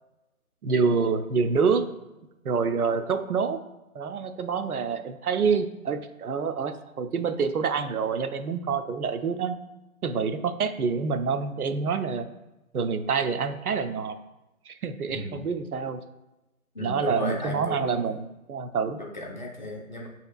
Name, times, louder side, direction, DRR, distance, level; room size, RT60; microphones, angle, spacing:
voice 1, 0.6-1.9 2.4-3.6 3.9-9.6 10.0-12.3 12.7-14.2 14.7-16.0 16.8-19.0, right 5 dB, 85° right, 9 dB, 0.5 m, -27 dB
voice 2, 15.1-15.5 16.7-18.0 19.0-20.1, left 1 dB, 35° left, -1 dB, 0.5 m, -34 dB
6.1 x 2.8 x 2.4 m, 0.99 s
figure-of-eight pair, 145°, 43 cm